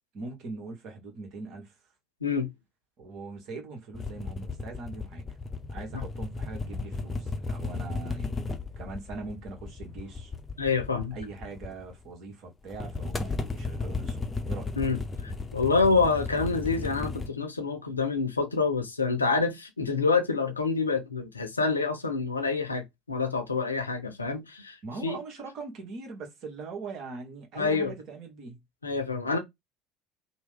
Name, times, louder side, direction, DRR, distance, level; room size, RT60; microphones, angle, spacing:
voice 1, 0.1-1.8 3.0-5.2 5.7-8.5 8.8-10.3 11.1-14.7 24.8-28.6, right 3 dB, 50° right, 1.1 m, -41 dB
sound 1, 3.9-12.0 12.7-17.3, left 3 dB, 20° left, 0.6 m, -35 dB
voice 2, 10.6-11.1 14.8-24.8 25.0-25.2 27.6-27.9 28.8-29.4, left 4 dB, 80° left, 0.5 m, -27 dB
2.9 x 2.1 x 3.5 m
figure-of-eight pair, 65°, 0 cm